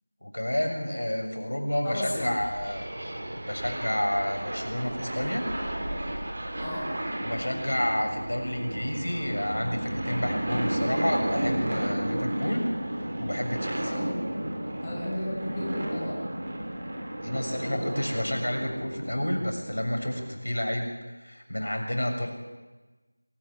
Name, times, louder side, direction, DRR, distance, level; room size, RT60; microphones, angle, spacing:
voice 1, 0.2-3.0 3.3-5.4 7.2-12.7 13.0-14.0 17.2-20.9 21.2-22.3, left 1 dB, 90° left, 4 dB, 6.8 m, -30 dB
voice 2, 1.8-2.4 6.6-6.9 13.8-14.3 14.8-16.2 17.6-17.8, left 1 dB, 10° left, -5 dB, 2.1 m, -33 dB
sound 1, 2.1-20.3, right 1 dB, 25° right, 3.1 m, -33 dB
22.5 x 14.0 x 9.8 m, 1.2 s
figure-of-eight pair, 180°, 0 cm